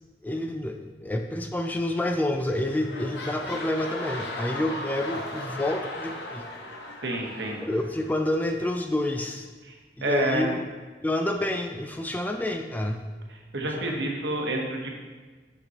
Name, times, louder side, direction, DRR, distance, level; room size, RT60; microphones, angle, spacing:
voice 1, 0.2-6.5 7.6-9.5 10.0-10.6 11.0-13.1 13.8-14.0, left 1 dB, 10° left, 4 dB, 0.3 m, -28 dB
sound 1, 2.1-2.3 2.6-8.4 9.1-9.2, left 1 dB, 75° left, 0.9 m, -37 dB
voice 2, 7.0-7.6 9.7-9.8 10.0-10.6 13.3-15.0, right 1 dB, 85° right, 1 dB, 1.1 m, -29 dB
6.7 x 5.9 x 2.9 m, 1.4 s
head